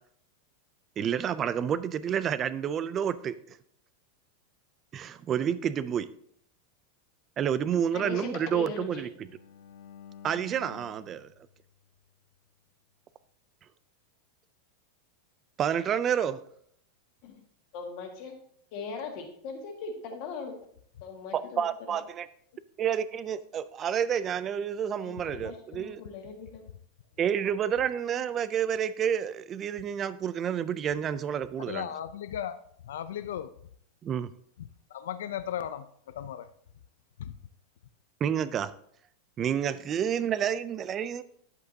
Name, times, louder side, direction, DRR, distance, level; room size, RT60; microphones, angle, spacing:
voice 1, 1.0-3.6 4.9-6.1 7.4-9.1 10.2-11.3 15.6-16.4 21.3-22.3 22.8-26.0 27.2-31.9 34.0-34.3 38.2-38.7 39.4-41.2, right 8 dB, 20° right, 15 dB, 0.3 m, -29 dB
voice 2, 7.9-9.0 17.2-17.4 17.7-18.3 18.7-20.6 21.0-21.6 25.0-26.6, left 4 dB, 40° left, 3 dB, 1.7 m, -39 dB
Bowed string instrument, 8.2-12.4, left 9 dB, 70° left, 1.0 m, -52 dB
voice 3, 31.7-33.5 34.9-35.9 36.1-36.5 37.2-37.4, left 10 dB, 85° left, 12 dB, 0.4 m, -36 dB
10.5 x 8.0 x 2.7 m, 0.65 s
supercardioid pair, 180°, 0 cm